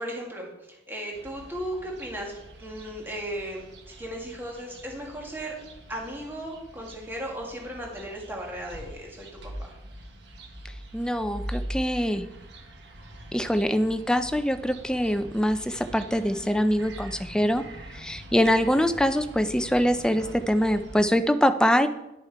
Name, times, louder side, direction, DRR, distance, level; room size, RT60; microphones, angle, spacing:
voice 1, 0.0-5.6 5.9-9.3, right 1 dB, 10° right, -1 dB, 1.9 m, -36 dB
sound 1, 1.1-21.0, right 1 dB, 70° right, 1.4 m, -43 dB
voice 2, 10.9-12.3 13.3-17.6 17.9-21.9, equal, 5° left, 9 dB, 0.4 m, -24 dB
10.5 x 6.9 x 4.6 m, 0.96 s
head